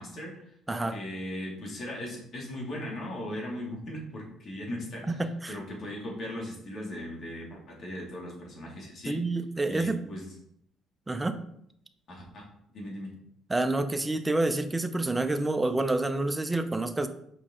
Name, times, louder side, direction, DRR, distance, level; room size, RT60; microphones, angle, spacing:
voice 1, 0.0-0.5 0.9-5.2 5.5-9.2 9.7-10.3 12.1-13.1, left 1 dB, 50° left, -2 dB, 2.6 m, -38 dB
voice 2, 5.1-5.6 9.1-10.0 11.1-11.4 13.5-17.1, right 2 dB, 10° right, 8 dB, 0.6 m, -28 dB
6.8 x 5.2 x 3.8 m, 0.71 s
cardioid pair, 120°, 0 cm